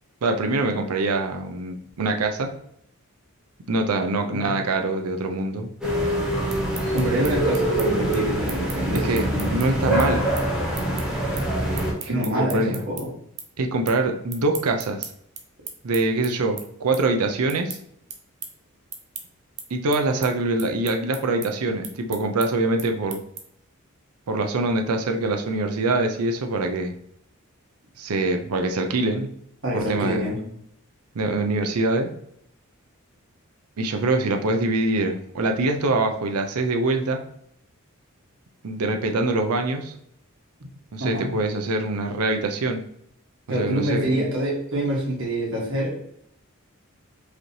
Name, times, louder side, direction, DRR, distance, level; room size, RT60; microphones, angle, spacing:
voice 1, 0.2-2.5 3.7-5.7 9.0-9.3 9.5-10.2 12.0-12.8 13.6-15.1 15.8-17.8 19.7-23.2 24.3-26.9 28.0-29.3 29.7-30.2 31.1-32.1 33.8-37.2 38.6-39.9 40.9-42.8 43.5-44.3, right 2 dB, 90° right, 5 dB, 0.6 m, -24 dB
sound 1, 5.8-11.9, right 1 dB, ahead, 1.3 m, -24 dB
sound 2, 6.5-13.0 13.4-14.0 14.3-23.7, right 7 dB, 30° right, 0.5 m, -38 dB
voice 2, 6.9-9.5 12.1-13.1 29.6-30.4 41.0-41.3 43.5-46.0, equal, 60° right, -3 dB, 1.5 m, -26 dB
4.9 x 3.1 x 2.8 m, 0.72 s
head